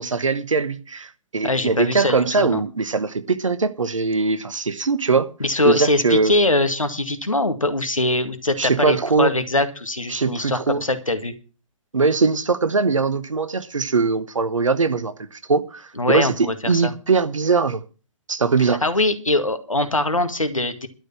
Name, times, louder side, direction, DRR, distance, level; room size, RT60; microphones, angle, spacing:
voice 1, 0.0-5.3 5.6-6.3 8.6-9.3 10.1-10.8 11.9-17.8 18.3-18.8, right 4 dB, 70° right, 1.3 m, -21 dB
voice 2, 1.4-2.6 5.4-11.3 16.0-16.9 18.8-20.9, left 2 dB, 80° left, 2.0 m, -22 dB
12.0 x 6.7 x 8.8 m
figure-of-eight pair, 120°, 17 cm